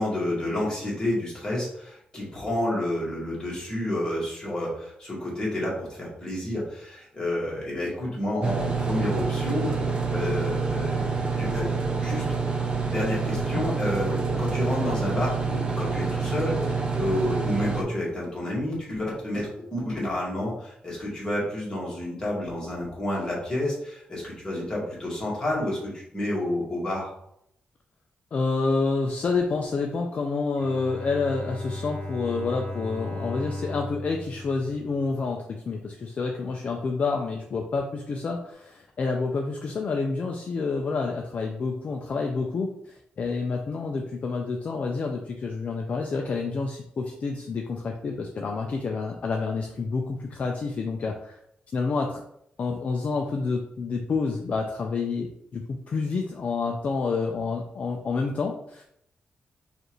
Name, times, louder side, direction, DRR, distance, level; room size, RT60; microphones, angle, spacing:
voice 1, 0.0-12.2 12.8-27.1, left 1 dB, 20° left, -5 dB, 1.5 m, -30 dB
sound 1, 8.4-17.8, right 4 dB, 30° right, 0.5 m, -27 dB
voice 2, 28.3-51.4 51.7-52.2 52.6-58.8, left 4 dB, 40° left, 2 dB, 0.4 m, -28 dB
Bowed string instrument, 30.6-35.5, left 1 dB, 75° left, 0.7 m, -36 dB
5.2 x 2.5 x 3.0 m, 0.74 s
wide cardioid pair, 155°, 3 cm